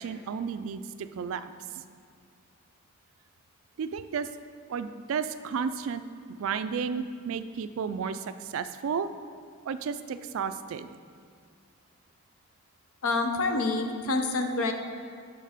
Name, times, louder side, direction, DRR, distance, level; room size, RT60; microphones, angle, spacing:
voice 1, 0.0-1.8 3.8-4.3 4.7-6.0 6.4-9.1 9.7-10.9, right 6 dB, 65° right, 11 dB, 0.3 m, -33 dB
voice 2, 13.0-14.7, left 3 dB, 70° left, 5 dB, 0.7 m, -27 dB
6.5 x 5.7 x 5.0 m, 2.1 s
head